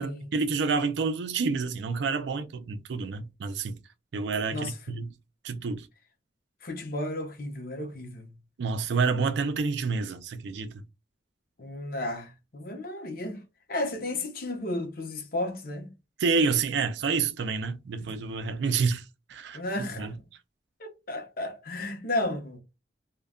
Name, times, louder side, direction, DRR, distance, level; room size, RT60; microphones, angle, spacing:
voice 1, 0.0-3.8 4.1-5.1 5.4-5.9 8.6-10.7 16.2-19.0 19.3-19.6 20.0-20.1, right 4 dB, 70° right, 0.4 m, -28 dB
voice 2, 4.5-5.0 6.6-8.3 11.6-13.4 13.7-15.9 18.0-18.1 18.6-18.8 19.5-20.1 20.8-22.6, left 1 dB, 50° left, 0.7 m, -33 dB
2.2 x 2.1 x 3.5 m
head